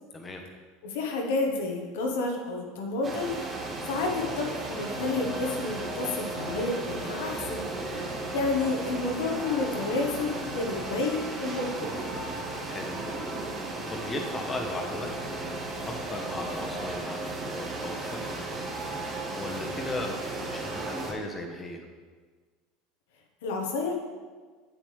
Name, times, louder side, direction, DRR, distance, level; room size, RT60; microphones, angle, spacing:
voice 1, 0.1-0.4 7.9-8.2 12.7-13.2 13.9-15.1 15.9-18.5 19.4-20.2 20.5-21.9, left 2 dB, 20° left, 2 dB, 1.2 m, -37 dB
voice 2, 0.8-3.3 3.8-7.7 8.3-11.9 23.4-23.9, left 3 dB, 70° left, 1 dB, 1.2 m, -30 dB
sound 1, 3.0-21.1, right 2 dB, 30° right, 1.6 m, -35 dB
7.9 x 7.3 x 3.4 m, 1.5 s
hypercardioid pair, 75°, 0 cm